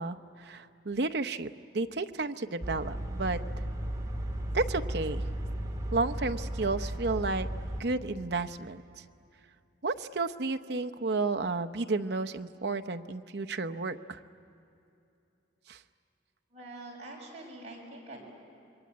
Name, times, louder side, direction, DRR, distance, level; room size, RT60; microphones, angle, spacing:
voice 1, 0.0-3.4 4.5-5.2 5.9-7.5 7.8-8.8 9.8-14.2 15.7-15.8, right 3 dB, 60° right, 7 dB, 0.8 m, -32 dB
sound 1, 2.6-7.8, right 1 dB, 20° right, 1.8 m, -35 dB
voice 2, 16.5-18.2, right 2 dB, 35° right, -2 dB, 6.5 m, -45 dB
27.0 x 23.0 x 9.4 m, 2.7 s
head